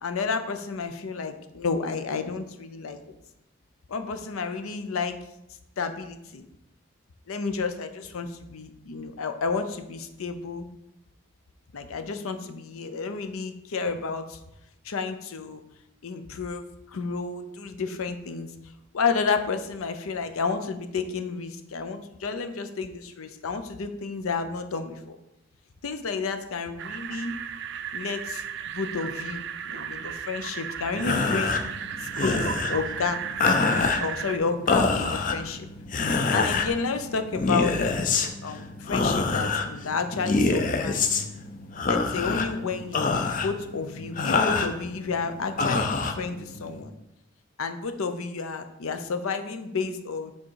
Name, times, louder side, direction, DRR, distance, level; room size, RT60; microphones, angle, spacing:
voice 1, 0.0-3.0 3.9-5.2 5.8-6.4 7.3-10.7 11.7-14.4 14.8-15.6 16.0-18.5 18.9-25.2 25.8-27.4 27.9-28.4 28.7-31.6 32.0-33.2 34.0-35.7 36.3-37.8 38.4-41.1 41.8-46.9 47.6-50.3, left 4 dB, 85° left, 8 dB, 0.6 m, -31 dB
sound 1, 26.8-34.4, right 8 dB, 55° right, 0.4 m, -35 dB
sound 2, 30.9-46.8, left 4 dB, 40° left, 0.4 m, -27 dB
6.3 x 3.7 x 4.6 m, 0.87 s
head